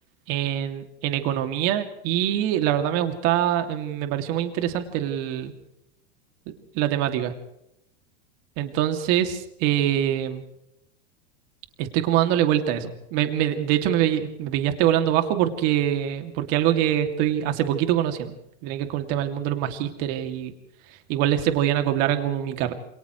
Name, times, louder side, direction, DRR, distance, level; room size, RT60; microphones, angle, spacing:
voice 1, 0.3-5.5 6.5-7.3 8.6-10.4 11.8-18.3 18.6-20.5 21.1-22.7, right 11 dB, 45° right, 6 dB, 2.7 m, -24 dB
28.5 x 28.0 x 3.3 m, 0.79 s
supercardioid pair, 140°, 35 cm